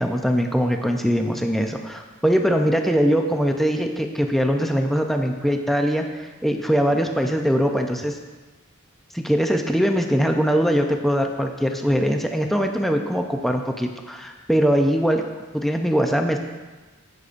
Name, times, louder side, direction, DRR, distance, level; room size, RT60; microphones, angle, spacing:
voice 1, 0.0-8.2 9.1-15.2 15.5-16.4, equal, ahead, 3 dB, 0.5 m, -22 dB
18.0 x 6.6 x 2.5 m, 1.3 s
head